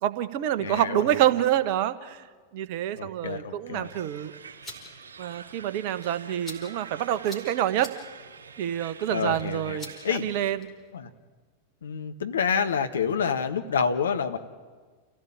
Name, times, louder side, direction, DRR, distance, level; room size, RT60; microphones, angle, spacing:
voice 1, 0.0-2.2 2.5-4.3 5.2-7.9 8.6-10.7, right 11 dB, 45° right, 13 dB, 1.1 m, -27 dB
voice 2, 0.6-1.0 2.9-3.9 9.1-10.3 10.9-11.1 11.8-14.4, left 6 dB, 65° left, 7 dB, 1.4 m, -28 dB
sound 1, 3.8-10.5, right 6 dB, 70° right, 3.1 m, -46 dB
sound 2, 4.4-10.9, left 2 dB, 20° left, 5.0 m, -48 dB
29.5 x 16.0 x 8.8 m, 1.5 s
figure-of-eight pair, 90°, 0 cm